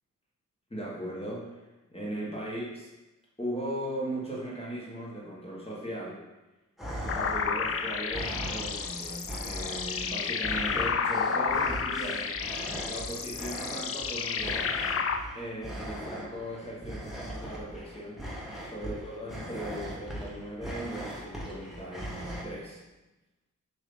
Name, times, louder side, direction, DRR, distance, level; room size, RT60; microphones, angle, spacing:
voice 1, 0.7-1.6 1.9-2.9 3.4-6.2 7.0-14.7 15.3-18.2 18.6-22.8, right 1 dB, 20° left, -5 dB, 1.3 m, -38 dB
sound 1, 6.8-22.4, equal, ahead, 0.9 m, -40 dB
sound 2, 7.1-15.2, left 6 dB, 45° left, 0.4 m, -31 dB
6.7 x 2.7 x 5.3 m, 1.1 s
wide cardioid pair, 170°, 31 cm